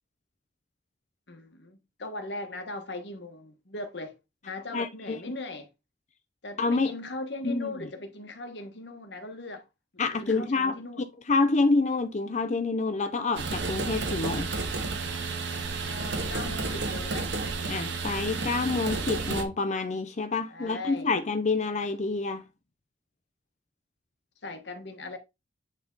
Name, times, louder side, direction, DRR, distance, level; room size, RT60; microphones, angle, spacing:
voice 1, 1.3-4.2 4.4-5.7 6.4-9.7 10.1-11.0 15.9-17.4 20.5-21.1 24.4-25.2, left 2 dB, 75° left, 1.4 m, -39 dB
voice 2, 4.7-5.2 6.6-6.9 7.4-7.7 10.0-10.8 11.3-14.5 17.7-22.4, left 3 dB, 40° left, 0.6 m, -27 dB
sound 1, 13.4-19.4, right 3 dB, 85° right, 1.6 m, -31 dB
9.8 x 3.5 x 4.0 m
head